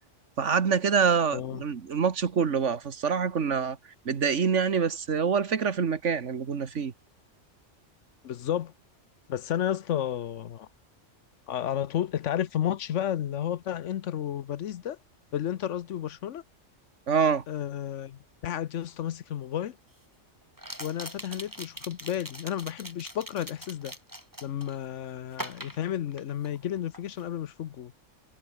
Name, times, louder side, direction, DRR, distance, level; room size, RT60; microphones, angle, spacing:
voice 1, 0.4-3.8 4.1-6.9 17.1-17.4, right 6 dB, 70° right, 1.7 m, -26 dB
voice 2, 8.2-8.7 9.3-10.7 11.5-15.0 15.3-16.4 17.5-19.8 20.8-23.9 24.4-27.9, left 10 dB, 75° left, 1.1 m, -32 dB
sound 1, 18.9-19.0 20.6-24.8 25.3-26.7 26.9-27.3, equal, 15° right, 7.0 m, -42 dB
omnidirectional pair, 1.3 m